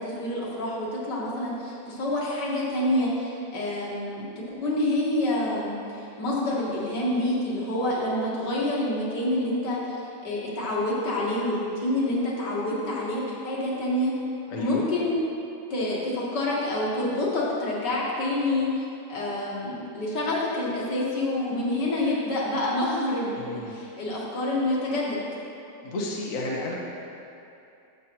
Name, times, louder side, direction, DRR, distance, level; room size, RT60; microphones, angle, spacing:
voice 1, 0.0-10.0 10.2-14.1 14.6-15.2 15.7-25.2, left 1 dB, 90° left, -6 dB, 2.3 m, -27 dB
voice 2, 14.5-14.8 23.4-23.8 25.8-26.7, left 2 dB, 55° left, -3 dB, 1.4 m, -32 dB
12.0 x 7.3 x 3.1 m, 2.7 s
omnidirectional pair, 1.8 m